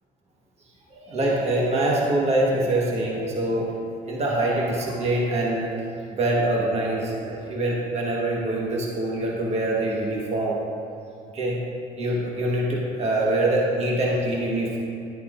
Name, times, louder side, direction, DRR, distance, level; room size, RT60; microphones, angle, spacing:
voice 1, 0.9-3.7 4.0-5.7 6.1-10.6 11.3-11.6 12.0-14.8, right 1 dB, 40° right, -3 dB, 1.4 m, -24 dB
11.0 x 8.5 x 2.5 m, 2.5 s
cardioid pair, 110°, 17 cm